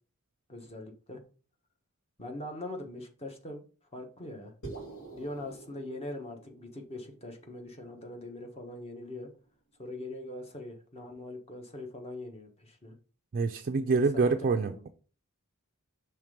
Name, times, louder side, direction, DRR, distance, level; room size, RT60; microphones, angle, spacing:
voice 1, 0.5-1.2 2.2-3.6 3.9-4.5 5.1-9.3 9.8-12.9 13.7-14.8, left 1 dB, 30° left, 1.2 m, -42 dB
sound 1, 4.6-9.0, right 3 dB, 80° left, 2.1 m, -48 dB
voice 2, 13.3-14.9, right 4 dB, 40° right, 0.4 m, -26 dB
5.9 x 3.3 x 5.0 m
head